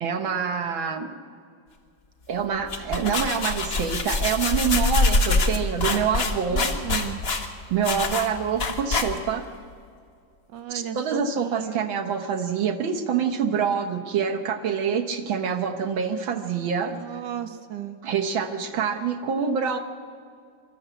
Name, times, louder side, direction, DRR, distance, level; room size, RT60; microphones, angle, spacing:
voice 1, 0.0-1.2 2.3-6.7 7.7-9.4 10.7-17.0 18.0-19.8, right 7 dB, 85° right, 5 dB, 2.0 m, -26 dB
sound 1, 2.5-9.5, left 3 dB, 35° left, 1.3 m, -25 dB
voice 2, 6.5-7.2 10.5-11.8 16.9-18.0, right 9 dB, 70° right, 10 dB, 1.4 m, -34 dB
23.5 x 13.5 x 8.3 m, 2.3 s
omnidirectional pair, 2.1 m